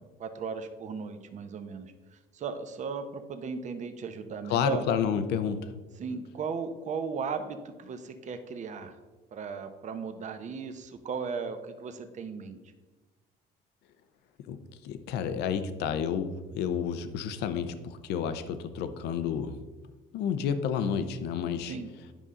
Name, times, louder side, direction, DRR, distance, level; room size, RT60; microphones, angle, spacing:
voice 1, 0.0-1.9 2.3-4.9 6.0-9.0 9.3-12.6 21.7-21.9, right 5 dB, 45° right, 8 dB, 0.8 m, -36 dB
voice 2, 4.5-5.7 14.5-19.6 20.1-21.8, left 7 dB, 80° left, 10 dB, 0.7 m, -30 dB
10.0 x 5.4 x 3.7 m, 1.2 s
cardioid pair, 110°, 17 cm